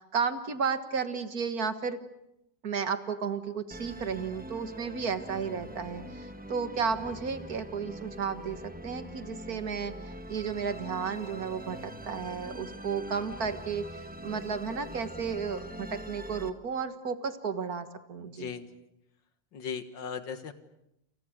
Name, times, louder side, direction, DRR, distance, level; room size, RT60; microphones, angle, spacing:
voice 1, 0.1-2.0 2.6-9.9 10.3-13.8 14.2-18.5, right 6 dB, 55° right, 10 dB, 2.0 m, -33 dB
Musical instrument, 3.7-16.5, right 1 dB, 5° right, 1.1 m, -43 dB
voice 2, 18.2-18.7 19.5-20.5, left 6 dB, 90° left, 10 dB, 2.3 m, -38 dB
28.5 x 28.5 x 6.5 m, 0.81 s
omnidirectional pair, 1.9 m